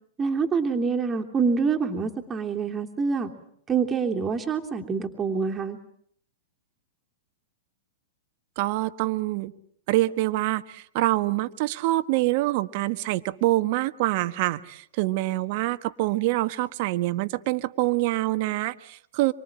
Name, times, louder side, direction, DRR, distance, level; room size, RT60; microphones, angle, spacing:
voice 1, 0.2-3.3 3.7-5.8, right 5 dB, 20° right, 2 dB, 3.1 m, -26 dB
voice 2, 8.6-9.5 9.9-19.3, right 18 dB, 50° right, 13 dB, 1.4 m, -25 dB
26.5 x 24.0 x 8.9 m, 0.66 s
hypercardioid pair, 110°, 0 cm